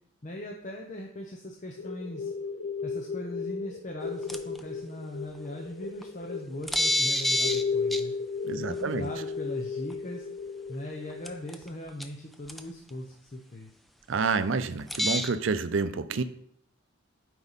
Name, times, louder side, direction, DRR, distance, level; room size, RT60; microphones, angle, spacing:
voice 1, 0.2-2.3 2.8-8.1 8.5-10.3 10.7-13.7, left 1 dB, 35° left, 1 dB, 0.7 m, -40 dB
sound 1, 1.8-11.6, left 5 dB, 90° left, 0.7 m, -35 dB
sound 2, 4.3-4.6 6.0-6.1 6.7-7.6 7.9-8.0 9.9-10.0 11.2-11.7 12.0-12.1 12.5-12.6 14.9-15.3, left 1 dB, ahead, 0.3 m, -26 dB
voice 2, 8.5-9.1 14.1-16.2, right 4 dB, 70° right, 12 dB, 0.5 m, -28 dB
8.8 x 4.6 x 4.1 m, 0.68 s
head